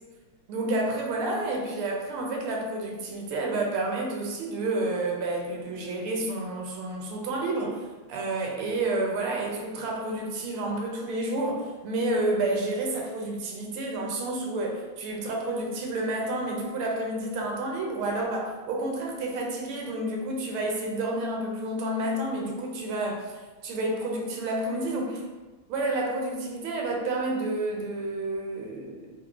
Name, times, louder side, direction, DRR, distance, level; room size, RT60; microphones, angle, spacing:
voice 1, 0.5-25.2 25.7-29.0, right 2 dB, 85° right, 0 dB, 1.5 m, -30 dB
3.6 x 3.4 x 2.3 m, 1.3 s
omnidirectional pair, 2.4 m